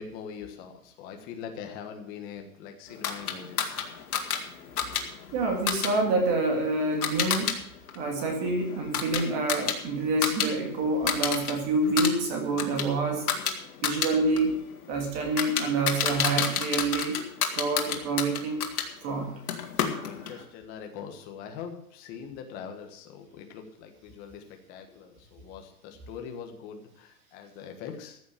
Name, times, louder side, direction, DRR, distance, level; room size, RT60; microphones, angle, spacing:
voice 1, 0.0-3.8 19.5-28.2, left 7 dB, 20° left, 4 dB, 1.4 m, -42 dB
sound 1, 3.0-7.6 7.9-10.5 10.8-11.5 11.8-18.9 19.5-20.4, left 8 dB, 85° left, 2.4 m, -30 dB
voice 2, 5.3-7.6 7.9-13.3 13.8-14.6 14.9-17.2 17.5-18.6 19.0-19.4 19.9-20.1, right 2 dB, 25° right, 3 dB, 2.0 m, -27 dB
14.5 x 7.2 x 7.2 m, 0.73 s
supercardioid pair, 175°, 44 cm